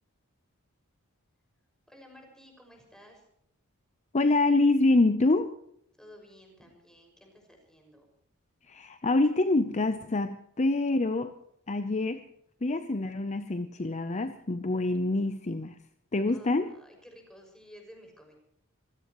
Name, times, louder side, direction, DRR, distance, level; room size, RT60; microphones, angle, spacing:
voice 1, 1.9-3.2 6.0-8.1 16.3-18.3, equal, 5° left, 6.1 m, -53 dB
voice 2, 4.1-5.5 8.7-11.3 11.7-12.2 12.6-15.8 16.1-16.7, left 2 dB, 30° left, 0.7 m, -26 dB
26.5 x 16.5 x 3.1 m
head